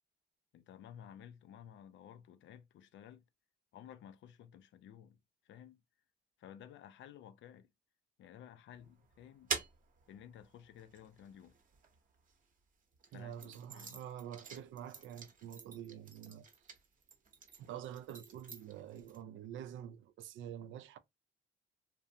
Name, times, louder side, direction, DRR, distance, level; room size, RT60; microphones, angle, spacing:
voice 1, 0.5-3.2 3.7-5.2 5.4-5.8 6.4-7.7 8.2-9.5 10.1-11.5 13.1-14.0, left 9 dB, 70° left, 0.4 m, -54 dB
sound 1, 8.7-12.3 12.9-19.2, right 5 dB, 45° right, 0.8 m, -47 dB
voice 2, 13.1-16.8 17.6-21.0, right 10 dB, 75° right, 0.4 m, -47 dB
2.4 x 2.0 x 2.7 m
cardioid pair, 90°, 20 cm